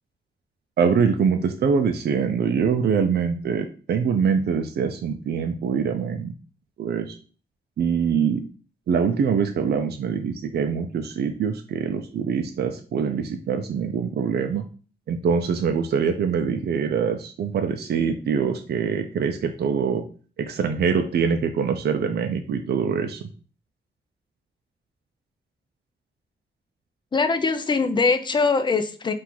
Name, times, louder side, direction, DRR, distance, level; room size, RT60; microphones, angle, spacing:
voice 1, 0.8-6.3 6.8-7.2 7.8-8.4 8.9-14.7 15.1-20.0 20.4-23.3, right 6 dB, 65° right, 5 dB, 0.4 m, -24 dB
voice 2, 27.1-29.1, left 4 dB, 25° left, 10 dB, 0.4 m, -22 dB
3.7 x 2.5 x 4.4 m, 0.39 s
wide cardioid pair, 165°, 18 cm